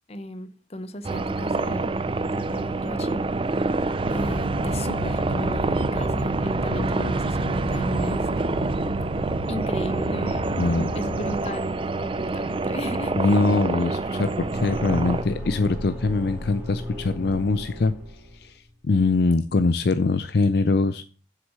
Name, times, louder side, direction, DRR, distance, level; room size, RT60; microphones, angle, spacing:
voice 1, 0.1-3.3 4.1-8.3 9.5-13.4, left 1 dB, 30° left, 0.8 m, -36 dB
sound 1, 1.0-15.2, right 3 dB, 25° right, 0.4 m, -27 dB
sound 2, 4.0-11.5, right 1 dB, 70° right, 1.5 m, -31 dB
voice 2, 10.6-10.9 13.2-17.9 18.4-18.5 18.8-21.0, left 3 dB, 55° left, 0.5 m, -22 dB
Car / Engine, 14.0-18.5, left 1 dB, 10° right, 2.4 m, -35 dB
7.7 x 6.3 x 6.6 m
head